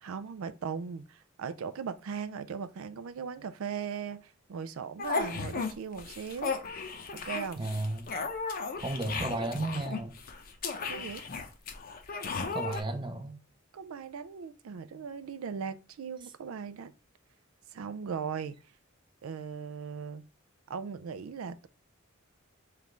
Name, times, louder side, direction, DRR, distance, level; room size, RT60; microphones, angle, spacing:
voice 1, 0.0-6.6 7.1-7.6 10.9-11.2 13.7-16.9 17.7-18.6 19.2-20.3 20.7-21.7, right 6 dB, 90° right, 0.4 m, -38 dB
sound 1, 5.0-5.7 6.0-12.8, left 4 dB, 45° left, 0.6 m, -35 dB
voice 2, 7.6-8.1 8.8-10.2 12.5-13.4, right 2 dB, 25° right, 0.5 m, -33 dB
3.3 x 3.1 x 3.7 m
head